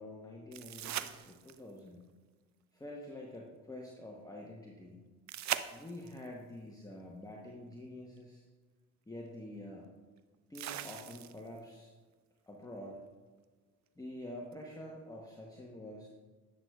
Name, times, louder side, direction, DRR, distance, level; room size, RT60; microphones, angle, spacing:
voice 1, 0.0-2.0 2.7-5.0 5.7-8.4 9.1-9.9 10.5-11.9 12.5-13.0 14.0-16.1, left 1 dB, 10° left, -2 dB, 1.1 m, -47 dB
sound 1, 0.5-1.8 5.3-6.3 8.2-8.3 10.5-11.6 14.5-14.6, right 12 dB, 45° right, 0.5 m, -40 dB
10.0 x 6.4 x 2.3 m, 1.4 s
hypercardioid pair, 50°, 40 cm